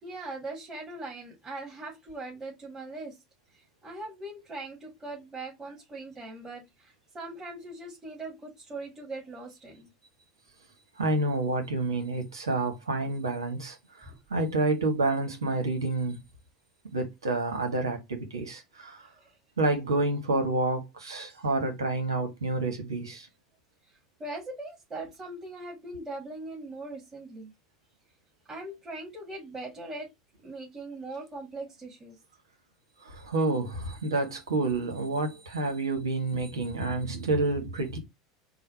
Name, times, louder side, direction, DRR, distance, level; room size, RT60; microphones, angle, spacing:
voice 1, 0.0-3.2 3.8-9.9 14.1-14.2 19.2-19.3 24.2-27.5 28.5-30.1 30.4-32.2, right 2 dB, 25° right, 1.8 m, -40 dB
voice 2, 11.0-16.2 16.9-19.1 19.6-23.3 33.0-38.0, right 2 dB, 85° right, 1.1 m, -29 dB
3.9 x 2.2 x 4.3 m
hypercardioid pair, 80°, 2 cm